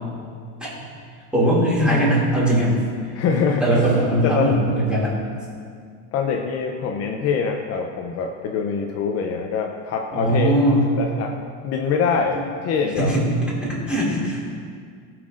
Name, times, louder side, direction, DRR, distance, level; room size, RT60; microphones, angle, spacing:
voice 1, 1.3-2.8 3.6-5.2 10.1-10.9 13.0-13.2 13.6-14.4, right 1 dB, 5° right, -7 dB, 2.3 m, -20 dB
voice 2, 3.1-3.9 4.2-4.6 6.1-10.6 11.0-11.4 11.6-13.2, left 6 dB, 40° left, 2 dB, 0.6 m, -24 dB
17.5 x 6.0 x 2.5 m, 2.2 s
cardioid pair, 155°, 37 cm